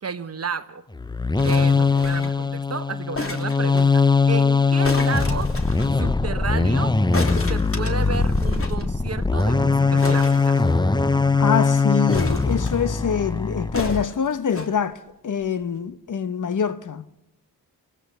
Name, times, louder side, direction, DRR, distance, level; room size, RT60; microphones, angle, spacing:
voice 1, 0.0-0.8 1.4-5.5 6.0-7.0 7.5-10.6, right 5 dB, 35° right, 1.2 m, -32 dB
sound 1, 0.9-14.0, left 4 dB, 10° left, 0.7 m, -21 dB
sound 2, 1.4-2.4 3.1-3.9 4.8-5.9 7.1-8.8 9.1-9.2 9.4-9.5 10.0-11.1 12.1-13.0 13.7-14.7 15.4-15.5, left 2 dB, 30° left, 3.0 m, -33 dB
voice 2, 11.4-17.0, left 7 dB, 45° left, 1.1 m, -25 dB
24.0 x 19.0 x 6.9 m
cardioid pair, 60°, 41 cm